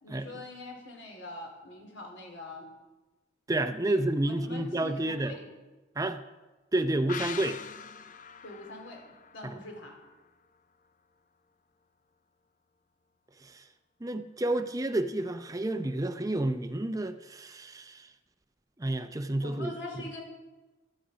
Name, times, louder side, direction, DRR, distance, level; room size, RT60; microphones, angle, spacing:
voice 1, 0.0-2.7 3.6-5.5 8.4-9.9 19.4-20.2, left 2 dB, 80° left, 1 dB, 3.8 m, -44 dB
voice 2, 3.5-5.3 6.0-6.2 6.7-7.6 9.4-9.5 13.4-13.6 14.0-18.1 18.8-19.7, right 1 dB, 20° right, 9 dB, 0.5 m, -30 dB
sound 1, 7.1-10.5 10.8-10.9, left 7 dB, 45° left, 0.6 m, -43 dB
15.5 x 13.0 x 5.1 m, 1.2 s
head